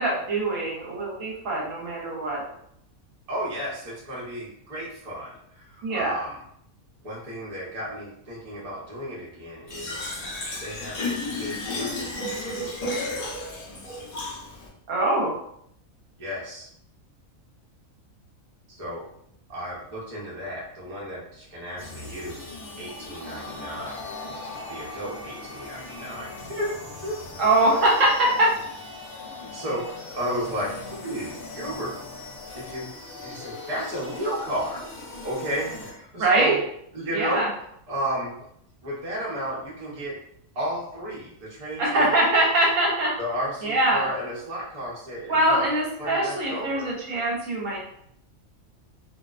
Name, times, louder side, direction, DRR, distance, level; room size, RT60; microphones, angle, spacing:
voice 1, 0.0-2.4 5.8-6.2 14.9-15.4 27.4-28.5 36.2-36.6 37.1-37.5 41.8-43.1 43.6-44.1 45.3-47.8, right 1 dB, 70° right, -3 dB, 1.0 m, -23 dB
voice 2, 3.3-6.4 7.0-10.1 10.6-13.3 16.2-16.7 18.8-19.0 19.5-24.0 24.7-27.1 29.5-32.0 32.5-32.9 33.2-34.8 35.2-36.6 36.9-37.5 37.9-38.4 38.8-40.2 40.5-42.1 43.2-45.6 46.0-46.9, equal, 35° right, -6 dB, 0.7 m, -33 dB
Fill (with liquid), 9.7-14.7, left 2 dB, 90° left, 0.3 m, -32 dB
sound 1, 21.8-35.9, left 3 dB, 70° left, 0.9 m, -40 dB
2.5 x 2.1 x 2.4 m, 0.71 s
omnidirectional pair, 1.4 m